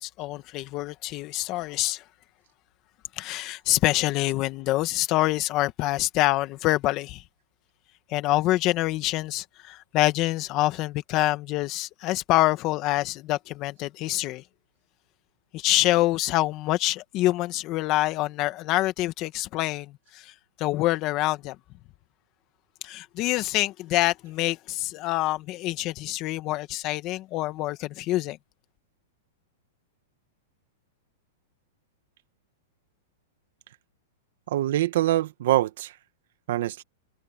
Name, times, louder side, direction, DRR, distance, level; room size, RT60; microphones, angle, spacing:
voice 1, 0.0-2.0 3.1-7.2 8.1-14.4 15.5-21.6 22.8-28.4, left 17 dB, 30° left, 1.6 m, -26 dB
voice 2, 34.5-36.0 36.5-36.8, right 14 dB, 60° right, 1.3 m, -24 dB
supercardioid pair, 165°, 0 cm